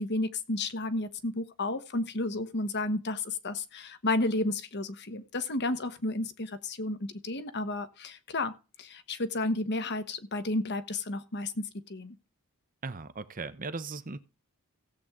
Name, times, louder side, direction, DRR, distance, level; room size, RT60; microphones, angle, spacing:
voice 1, 0.0-8.5 8.8-12.1, left 2 dB, 50° left, 1.2 m, -32 dB
voice 2, 12.8-14.2, right 4 dB, 35° right, 0.8 m, -38 dB
16.5 x 8.0 x 3.7 m
head